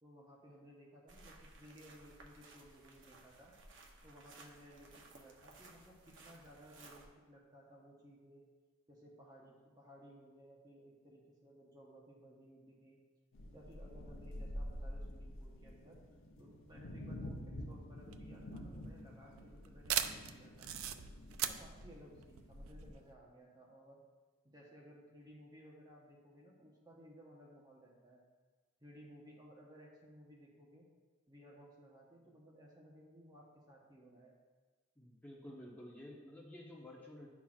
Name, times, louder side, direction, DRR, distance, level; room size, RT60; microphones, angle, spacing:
voice 1, 0.0-3.5 4.0-8.4 8.9-13.0 13.5-16.0 16.4-24.0 24.4-28.2 28.8-30.9 31.3-34.3, equal, 20° right, -3 dB, 0.9 m, -59 dB
sound 1, 1.1-7.1, right 3 dB, 60° right, 0.8 m, -59 dB
sound 2, 13.3-22.9, left 1 dB, 75° left, 0.7 m, -48 dB
sound 3, 18.0-23.1, right 10 dB, 90° right, 0.4 m, -40 dB
voice 2, 35.0-37.3, left 1 dB, 10° left, -5 dB, 1.0 m, -52 dB
10.0 x 6.0 x 2.4 m, 1.4 s
head